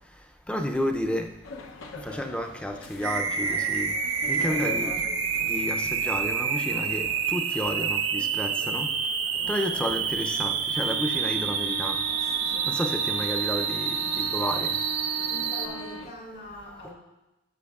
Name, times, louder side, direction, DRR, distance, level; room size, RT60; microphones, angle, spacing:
voice 1, 0.5-1.4 2.0-4.0 4.3-5.0 5.5-8.9 9.5-12.1 12.7-14.8 16.8-16.9, equal, 5° left, 5 dB, 0.4 m, -31 dB
sound 1, 1.4-16.1, left 1 dB, 80° left, 0.7 m, -41 dB
sound 2, 3.0-15.7, right 6 dB, 85° right, 0.7 m, -28 dB
voice 2, 15.3-16.9, equal, 55° left, -2 dB, 2.7 m, -42 dB
13.5 x 6.8 x 2.4 m, 0.99 s
head